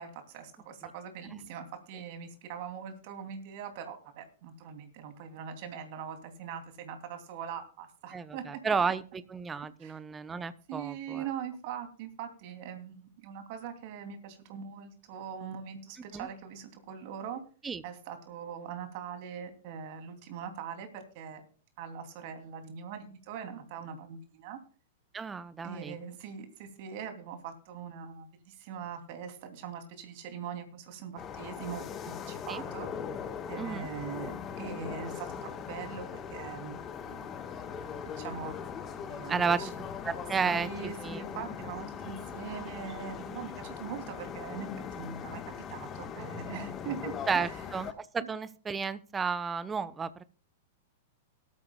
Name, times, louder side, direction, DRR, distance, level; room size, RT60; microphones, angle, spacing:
voice 1, 0.0-8.6 9.8-10.0 10.7-17.4 17.8-21.4 21.8-24.6 25.6-32.9 33.5-36.8 37.1-37.2 37.9-38.7 39.1-39.7 40.4-45.4 45.7-47.5 48.2-48.3, right 7 dB, 45° right, 7 dB, 2.7 m, -42 dB
voice 2, 8.1-11.2 16.1-16.3 17.6-17.8 25.1-26.0 32.5-32.6 33.6-33.9 39.3-39.6 40.0-41.2 47.3-50.2, right 5 dB, 15° right, 15 dB, 0.9 m, -32 dB
sound 1, 31.2-47.9, left 7 dB, 25° left, 1.3 m, -40 dB
18.0 x 13.0 x 2.3 m, 0.39 s
figure-of-eight pair, 100°, 0 cm